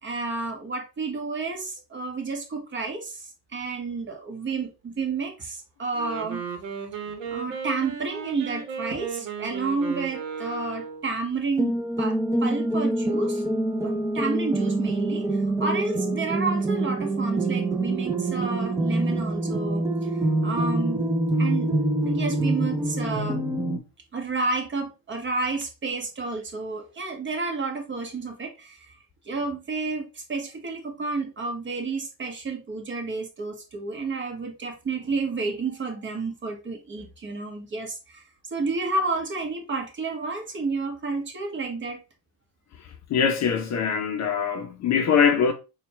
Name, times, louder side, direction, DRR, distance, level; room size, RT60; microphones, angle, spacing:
voice 1, 0.0-6.4 7.3-13.4 13.8-21.0 21.4-21.7 22.0-23.4 24.1-29.0 29.2-38.2 38.5-42.0, right 3 dB, 25° right, 1.0 m, -30 dB
Wind instrument woodwind instrument, 5.8-11.1, right 6 dB, 65° right, 1.0 m, -35 dB
sound 1, 11.6-23.8, right 2 dB, 5° right, 0.5 m, -25 dB
voice 2, 43.1-45.5, left 7 dB, 35° left, 0.7 m, -22 dB
4.2 x 2.4 x 3.1 m
hypercardioid pair, 80°, 47 cm